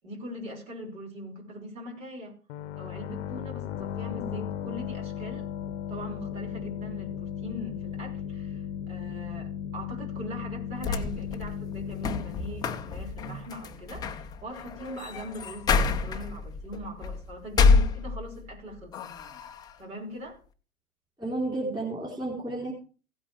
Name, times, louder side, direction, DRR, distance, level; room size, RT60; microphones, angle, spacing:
voice 1, 0.0-2.4 2.8-5.5 5.9-19.0 19.8-20.4, equal, 60° right, 5.8 m, -41 dB
sound 1, 2.5-14.0, left 9 dB, 50° left, 0.8 m, -36 dB
sound 2, 10.5-18.5 18.9-19.7, left 4 dB, 10° left, 0.5 m, -28 dB
voice 2, 21.2-22.7, right 2 dB, 10° right, 3.8 m, -31 dB
16.5 x 8.6 x 3.4 m
figure-of-eight pair, 110°, 44 cm